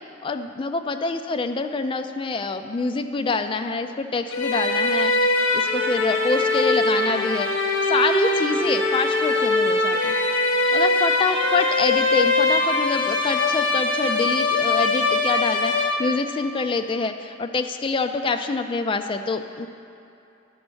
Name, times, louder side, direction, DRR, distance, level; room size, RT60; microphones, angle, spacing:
voice 1, 0.2-5.1 5.5-7.5 7.9-10.2 10.7-19.7, left 3 dB, 25° left, 7 dB, 0.3 m, -26 dB
sound 1, 4.3-16.4, left 2 dB, 85° left, 1.0 m, -22 dB
11.5 x 4.2 x 6.2 m, 2.7 s
head